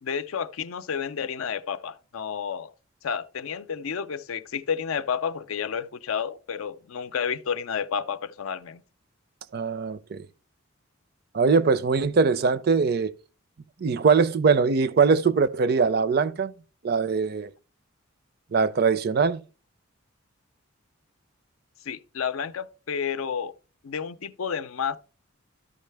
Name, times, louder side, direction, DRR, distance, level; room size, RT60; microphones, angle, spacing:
voice 1, 0.0-2.7 3.0-8.8 21.9-23.5 23.8-25.0, left 7 dB, 85° left, 0.5 m, -31 dB
voice 2, 9.5-10.3 11.3-13.1 13.8-16.5 16.8-17.5 18.5-19.4, right 5 dB, 50° right, 0.4 m, -22 dB
13.0 x 5.5 x 3.4 m
head